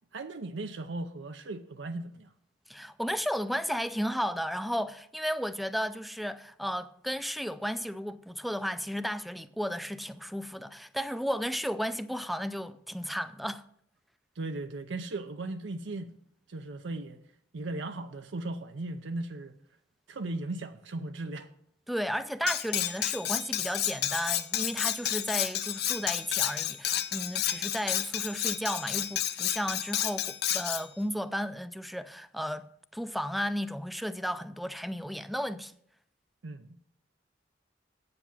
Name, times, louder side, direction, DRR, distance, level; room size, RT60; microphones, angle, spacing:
voice 1, 0.1-2.3 14.4-16.1 16.5-17.2 17.5-19.6 20.1-21.5 36.4-36.8, right 2 dB, 90° right, 0.6 m, -37 dB
voice 2, 2.7-13.6 21.9-35.7, equal, ahead, 0.4 m, -34 dB
Cutlery silverware, 22.5-30.8, left 11 dB, 60° left, 0.7 m, -31 dB
8.3 x 7.9 x 7.3 m
head